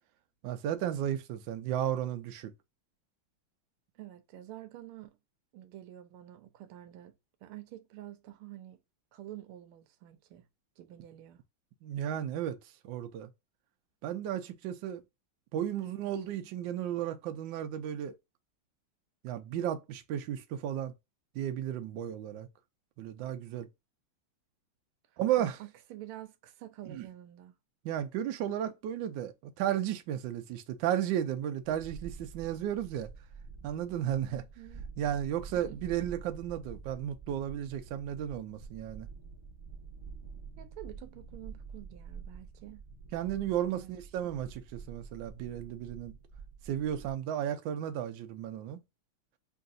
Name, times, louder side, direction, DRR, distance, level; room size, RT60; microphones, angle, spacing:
voice 1, 0.4-2.5 11.8-12.6 12.8-13.3 14.0-15.0 15.5-18.2 19.2-20.9 21.3-22.5 23.0-23.7 25.2-25.6 26.9-27.1 27.8-33.1 33.6-34.4 35.0-39.1 43.1-46.1 46.6-48.8, right 11 dB, 75° right, 1.2 m, -34 dB
voice 2, 3.9-5.2 5.5-7.1 7.4-8.8 9.1-10.4 10.8-11.4 15.8-16.0 25.4-27.6 34.3-34.8 35.5-35.8 40.6-42.8 43.8-43.9, right 13 dB, 90° right, 1.5 m, -48 dB
sound 1, 31.6-47.1, right 5 dB, 30° right, 0.4 m, -48 dB
5.6 x 2.7 x 2.5 m
omnidirectional pair, 2.3 m